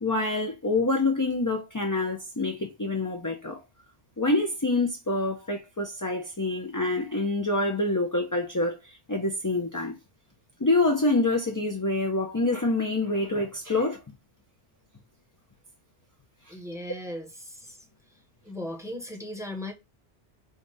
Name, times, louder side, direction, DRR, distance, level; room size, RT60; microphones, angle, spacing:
voice 1, 0.0-3.6 4.2-9.9 10.6-14.0, left 2 dB, 20° left, 0.6 m, -26 dB
voice 2, 16.5-17.8 18.4-19.7, left 1 dB, 5° right, 1.0 m, -37 dB
5.1 x 2.4 x 3.9 m
omnidirectional pair, 1.2 m